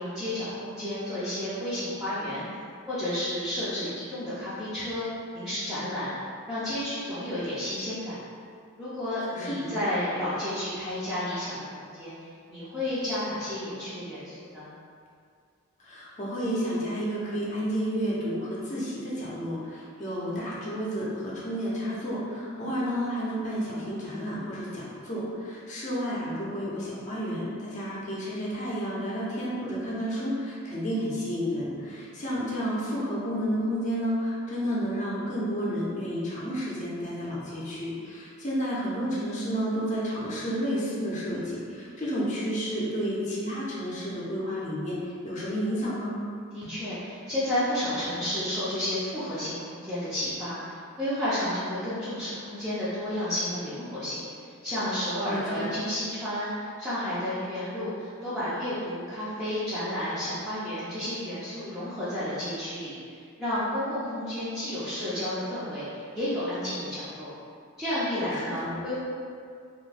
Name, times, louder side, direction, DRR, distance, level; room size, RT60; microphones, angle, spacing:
voice 1, 0.0-2.5 2.9-5.1 5.3-6.1 6.5-8.2 8.8-14.7 22.5-22.7 46.5-67.3 67.8-69.0, left 1 dB, ahead, -14 dB, 0.5 m, -31 dB
voice 2, 9.3-9.7 15.8-46.1 46.6-46.7 55.2-55.7 68.3-68.8, equal, 35° left, -7 dB, 0.7 m, -31 dB
2.7 x 2.5 x 3.3 m, 2.3 s
head